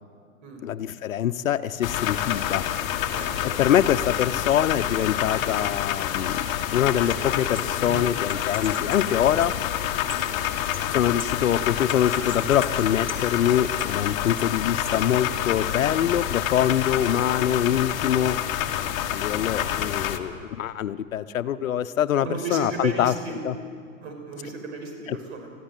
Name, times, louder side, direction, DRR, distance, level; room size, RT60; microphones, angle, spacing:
voice 1, 0.6-2.6 3.4-6.4 6.7-9.6 10.9-18.4 19.1-23.1 23.4-23.5 25.1-25.2, left 10 dB, 75° left, 12 dB, 1.0 m, -24 dB
sound 1, 1.8-20.2, left 11 dB, 40° left, 1.4 m, -28 dB
voice 2, 3.1-3.6 7.8-8.1 10.2-10.4 19.6-19.9 22.2-23.5 24.0-25.5, right 3 dB, 55° right, 2 dB, 6.2 m, -35 dB
sound 2, 6.9-16.0, left 1 dB, 5° right, 2.4 m, -43 dB
21.5 x 14.5 x 9.2 m, 2.2 s
hypercardioid pair, 135°, 41 cm